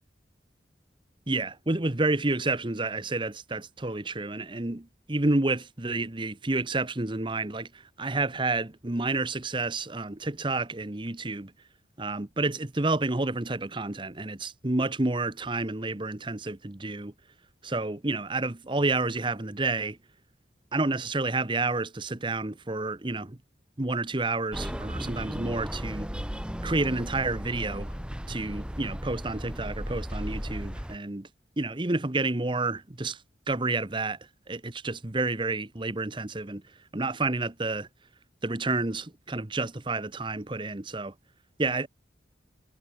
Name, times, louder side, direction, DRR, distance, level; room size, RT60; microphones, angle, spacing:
voice 1, 1.3-11.5 12.0-17.1 17.6-20.0 20.7-23.4 23.8-26.1 26.6-27.9 28.3-31.3 31.6-33.2 33.5-34.2 34.5-36.6 36.9-37.9 38.4-41.1 41.6-41.9, right 2 dB, 25° right, 1.0 m, -29 dB
sound 1, 24.5-31.0, equal, 5° right, 1.7 m, -35 dB
head